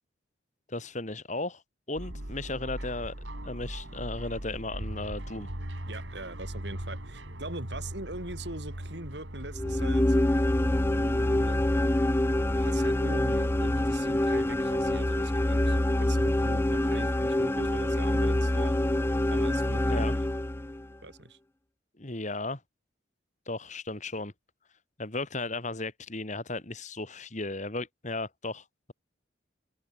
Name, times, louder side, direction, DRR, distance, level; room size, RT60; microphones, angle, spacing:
voice 1, 0.7-1.6 1.9-3.1 3.4-5.5 19.9-20.1 22.0-22.6 23.5-24.3 25.0-28.9, left 2 dB, 40° left, 2.4 m, -35 dB
sound 1, 2.0-19.5, right 1 dB, 80° right, 4.3 m, -42 dB
voice 2, 5.9-10.2 10.9-11.6 12.5-18.8 19.3-20.3 21.0-21.4, right 2 dB, 65° right, 6.8 m, -41 dB
sound 2, 9.5-20.9, left 1 dB, 15° left, 0.5 m, -26 dB
open air
head